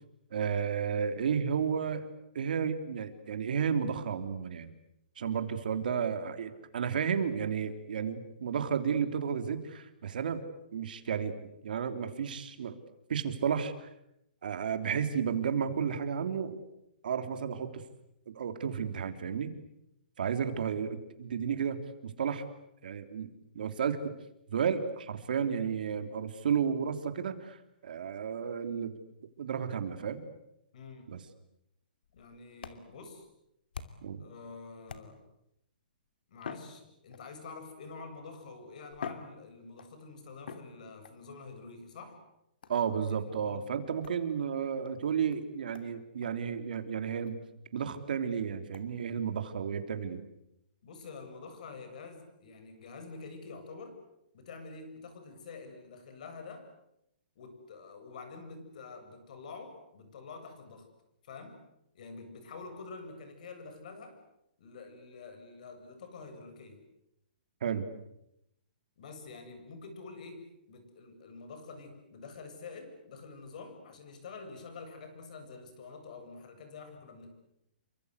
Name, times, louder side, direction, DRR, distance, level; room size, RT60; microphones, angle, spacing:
voice 1, 0.3-2.1 2.3-4.7 5.2-10.4 10.7-11.3 11.6-12.8 13.1-13.9 14.4-16.6 17.0-17.8 18.3-19.5 20.2-22.4 22.8-23.3 23.5-24.1 24.5-29.0 29.4-30.2 31.1-31.2 34.0-34.2 42.7-47.4 47.7-50.2 67.6-67.9, right 7 dB, 60° right, 8 dB, 3.3 m, -32 dB
voice 2, 30.7-31.1 32.1-33.3 34.2-35.2 36.3-42.2 42.8-42.9 43.2-43.6 50.8-54.0 54.3-56.7 57.4-60.9 61.2-61.6 61.9-64.2 64.6-66.8 69.0-77.3, left 4 dB, 50° left, 8 dB, 7.9 m, -47 dB
sound 1, 32.0-34.2 34.9-35.5 36.3-37.5 38.3-38.4 38.9-40.0 40.4-41.2 42.6-42.9 44.0-44.2 44.8-44.9 45.3-45.4 45.7-45.9 46.2-46.3 46.7-46.8 47.2-47.3 47.8-47.9 48.7-48.9, left 6 dB, 70° left, 2.9 m, -46 dB
29.5 x 24.5 x 8.3 m, 0.82 s
hypercardioid pair, 165°, 5 cm